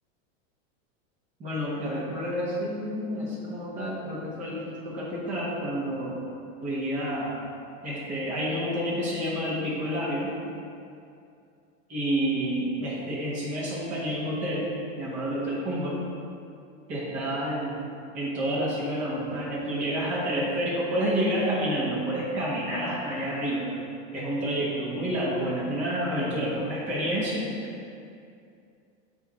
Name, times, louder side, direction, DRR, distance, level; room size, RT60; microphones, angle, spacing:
voice 1, 1.4-6.1 6.6-7.3 7.8-10.3 11.9-16.0 16.9-17.8 18.1-23.7 24.1-27.5, equal, 20° right, -7 dB, 1.1 m, -29 dB
7.7 x 2.8 x 4.6 m, 2.5 s
supercardioid pair, 175°, 39 cm